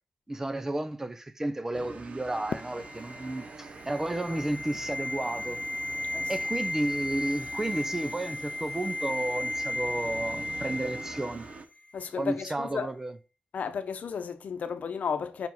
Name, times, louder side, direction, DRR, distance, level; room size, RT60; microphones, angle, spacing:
voice 1, 0.3-5.6 6.3-11.5 12.2-13.2, right 2 dB, 15° right, 0.6 m, -32 dB
sound 1, 1.7-11.7, right 4 dB, 55° right, 0.8 m, -45 dB
sound 2, 2.4-11.6 11.9-12.0, left 1 dB, 35° left, 1.1 m, -35 dB
Fireworks, 2.5-5.5, left 7 dB, 90° left, 0.4 m, -43 dB
voice 2, 11.9-12.9 13.5-15.5, left 6 dB, 70° left, 0.8 m, -33 dB
5.3 x 4.8 x 5.8 m
wide cardioid pair, 170°, 3 cm